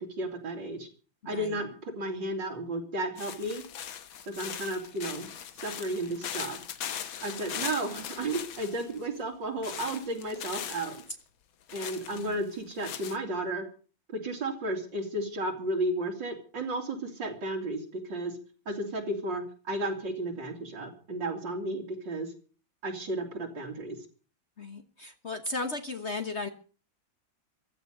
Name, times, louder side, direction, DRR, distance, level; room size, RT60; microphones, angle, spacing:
voice 1, 0.2-0.9 1.3-3.6 4.3-5.3 5.6-6.6 7.2-11.0 11.7-13.6 14.1-17.8 18.1-18.3 18.7-22.3 22.8-24.0, right 1 dB, 65° right, 3 dB, 3.7 m, -33 dB
voice 2, 1.2-1.6 12.1-12.3 24.6-26.5, left 3 dB, 40° left, 8 dB, 1.3 m, -36 dB
sound 1, 3.2-9.1 9.6-11.1 11.7-13.2, left 9 dB, 85° left, 2.0 m, -40 dB
15.5 x 12.5 x 6.6 m, 0.40 s
omnidirectional pair, 2.1 m